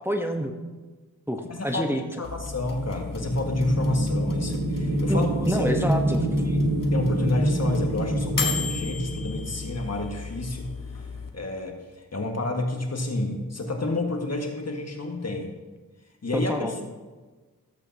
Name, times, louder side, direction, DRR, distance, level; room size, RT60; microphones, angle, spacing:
voice 1, 0.0-0.5 1.3-2.0 5.1-6.3 16.3-16.7, equal, 5° right, 3 dB, 1.1 m, -27 dB
voice 2, 1.5-5.7 6.4-6.6 6.9-10.7 11.3-15.5 16.2-16.8, left 2 dB, 45° left, 2 dB, 1.7 m, -29 dB
sound 1, 2.2-11.3, left 5 dB, 65° left, 1.3 m, -35 dB
sound 2, 2.3-10.0, right 1 dB, 85° right, 2.2 m, -27 dB
14.0 x 8.1 x 2.8 m, 1.3 s
cardioid pair, 40°, 35 cm